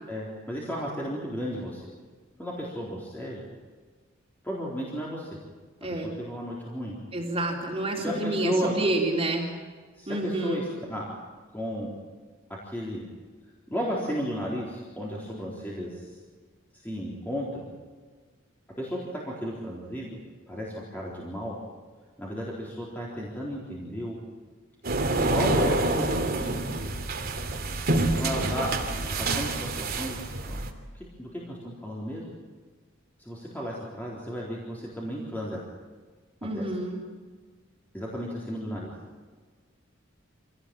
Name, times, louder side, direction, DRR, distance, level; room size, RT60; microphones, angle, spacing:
voice 1, 0.1-1.9 2.4-3.4 4.4-5.3 5.9-7.0 8.0-8.7 10.0-11.1 11.5-11.9 12.5-13.1 13.7-16.1 16.7-17.7 18.8-20.1 20.5-21.6 22.2-24.2 25.2-26.7 28.0-28.7 29.2-30.2 30.5-30.6 30.9-32.2 33.2-35.6 36.5-36.7 37.9-38.9, equal, 10° left, -5 dB, 4.0 m, -33 dB
voice 2, 5.8-6.1 7.1-9.5 10.1-10.6 36.4-37.0, right 2 dB, 30° right, -1 dB, 3.7 m, -28 dB
sound 1, 24.8-30.7, right 2 dB, 50° right, 2.8 m, -27 dB
26.5 x 18.0 x 8.9 m, 1.5 s
head